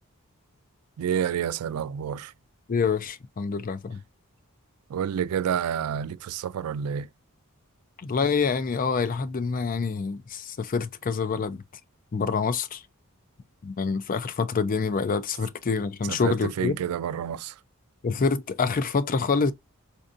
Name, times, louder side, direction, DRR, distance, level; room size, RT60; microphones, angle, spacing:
voice 1, 1.0-2.3 4.9-7.1 16.0-17.6, right 8 dB, 80° right, 0.3 m, -29 dB
voice 2, 2.7-4.0 8.0-11.6 12.1-12.8 13.6-16.7 18.0-19.5, left 5 dB, 40° left, 0.4 m, -26 dB
4.4 x 2.6 x 2.4 m
head